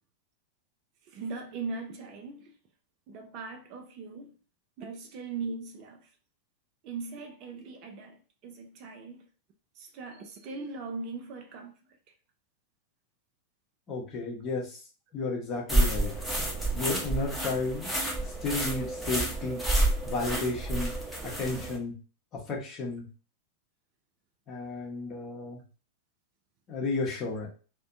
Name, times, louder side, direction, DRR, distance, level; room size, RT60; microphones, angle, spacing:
voice 1, 1.1-2.5 3.1-4.3 4.8-6.0 6.8-8.2 8.4-9.3 9.8-11.7, right 4 dB, 40° right, 0.4 m, -39 dB
voice 2, 13.9-14.8 15.1-16.1 16.7-17.9 18.2-19.6 20.0-20.9 21.2-21.9 22.3-23.1 24.5-25.6 26.7-27.5, left 3 dB, 30° left, 0.8 m, -33 dB
sound 1, 15.7-21.8, right 2 dB, ahead, 0.8 m, -29 dB
2.5 x 2.1 x 2.4 m
figure-of-eight pair, 90°, 0 cm